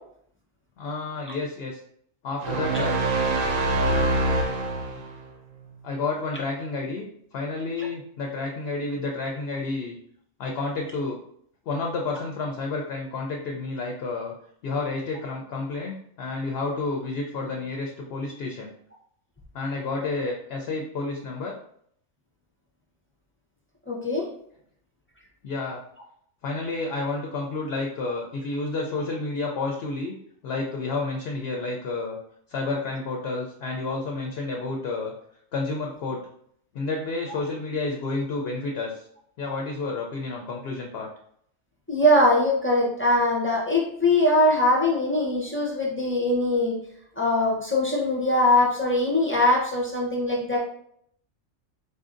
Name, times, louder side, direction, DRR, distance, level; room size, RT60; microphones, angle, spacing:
voice 1, 0.8-1.8 2.2-3.1 5.8-7.1 7.3-9.9 10.4-11.2 11.7-14.3 14.6-18.7 19.5-21.5 25.4-25.8 26.4-30.1 30.4-32.2 32.5-35.1 35.5-36.2 36.7-39.1 39.4-41.1, left 3 dB, 65° left, 1 dB, 0.7 m, -30 dB
sound 1, 2.4-5.2, right 2 dB, 85° right, 1.0 m, -24 dB
voice 2, 23.9-24.3 41.9-46.8 47.2-50.6, left 1 dB, 15° left, -4 dB, 0.4 m, -22 dB
4.2 x 2.6 x 2.5 m, 0.67 s
omnidirectional pair, 1.4 m